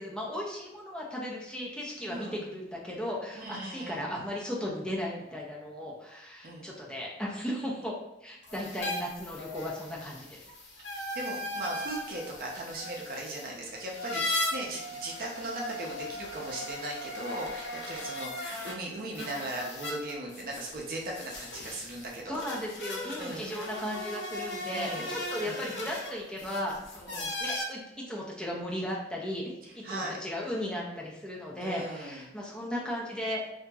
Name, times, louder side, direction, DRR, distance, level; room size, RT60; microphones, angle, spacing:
voice 1, 0.0-7.9 8.2-10.5 22.3-27.8 28.1-29.4 29.7-33.5, equal, 5° left, -4 dB, 0.5 m, -36 dB
voice 2, 2.1-2.5 3.3-4.1 6.4-6.7 11.1-22.4 23.1-23.5 24.7-25.6 27.1-27.3 29.8-30.2 31.6-32.3, right 1 dB, 50° right, -2 dB, 0.6 m, -38 dB
sound 1, 8.4-18.7 19.1-27.6, left 1 dB, 80° left, 0.6 m, -38 dB
2.8 x 2.6 x 2.3 m, 0.91 s
head